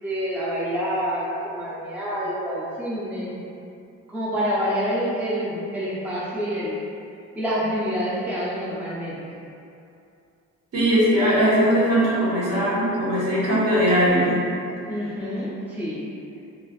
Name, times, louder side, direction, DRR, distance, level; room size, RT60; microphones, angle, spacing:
voice 1, 0.0-3.4 4.1-6.8 7.3-9.4 14.9-16.1, equal, 5° right, -8 dB, 0.4 m, -27 dB
voice 2, 10.7-14.4, equal, 55° right, -9 dB, 1.3 m, -20 dB
3.2 x 2.4 x 2.3 m, 2.6 s
cardioid pair, 90°, 30 cm